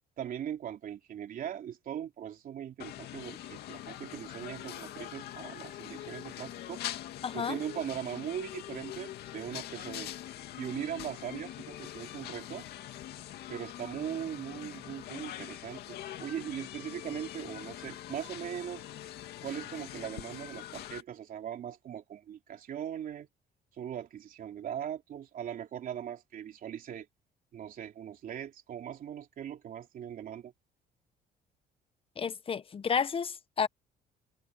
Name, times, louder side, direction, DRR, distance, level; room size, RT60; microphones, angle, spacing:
voice 1, 0.2-6.8 7.3-10.1 10.6-12.7 13.5-18.8 19.4-23.3 23.7-27.1 27.5-30.5, right 10 dB, 55° right, 3.2 m, -40 dB
sound 1, 2.8-21.0, left 12 dB, 70° left, 2.2 m, -43 dB
voice 2, 7.2-7.6 32.2-33.7, left 6 dB, 35° left, 1.0 m, -31 dB
cardioid pair, 110°, 17 cm